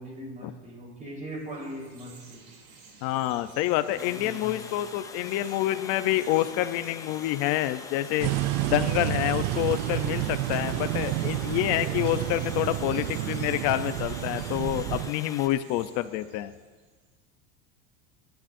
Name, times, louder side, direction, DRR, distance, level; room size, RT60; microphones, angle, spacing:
voice 1, 0.0-2.4 3.9-5.0 12.9-13.4, right 1 dB, 25° right, -2 dB, 4.1 m, -41 dB
Chirp tweet, 1.3-16.9, right 4 dB, 85° right, 3.2 m, -52 dB
voice 2, 3.0-8.3 8.6-16.5, left 14 dB, 55° left, 11 dB, 0.7 m, -27 dB
Water, 4.0-15.5, left 5 dB, 10° left, 0.3 m, -44 dB
sound 1, 8.2-15.1, right 18 dB, 55° right, 0.4 m, -30 dB
28.0 x 10.5 x 2.6 m, 1.4 s
supercardioid pair, 145°, 33 cm